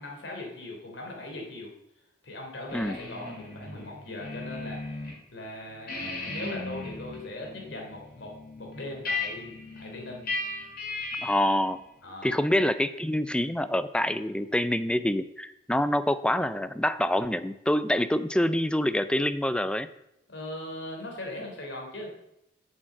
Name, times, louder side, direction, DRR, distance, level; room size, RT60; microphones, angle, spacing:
voice 1, 0.0-1.7 2.2-5.0 5.3-8.3 8.6-10.2 12.0-12.3 20.3-22.1, left 1 dB, 75° left, 1 dB, 3.4 m, -39 dB
sound 1, 2.7-5.2 5.5-11.6, left 3 dB, 50° left, 3.7 m, -37 dB
voice 2, 11.2-11.8 12.2-19.9, left 1 dB, 5° left, 12 dB, 0.4 m, -26 dB
8.9 x 7.2 x 7.5 m, 0.83 s
head